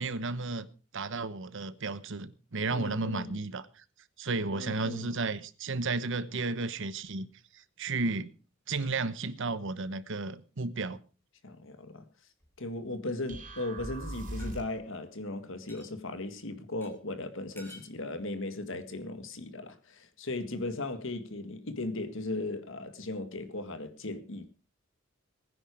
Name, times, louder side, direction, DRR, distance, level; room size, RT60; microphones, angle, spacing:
voice 1, 0.0-3.8 4.2-7.3 7.5-8.3 8.7-11.0, right 3 dB, 65° right, 1.1 m, -33 dB
voice 2, 2.7-3.3 4.6-5.1 11.4-12.1 12.6-24.5, left 2 dB, 65° left, 1.8 m, -37 dB
sound 1, 12.4-13.0 14.4-14.5 15.7-15.9 16.8-16.9 17.6-17.9, left 1 dB, 10° left, 3.6 m, -52 dB
sound 2, 13.3-14.9, right 1 dB, 40° right, 4.3 m, -40 dB
20.0 x 10.0 x 4.9 m
head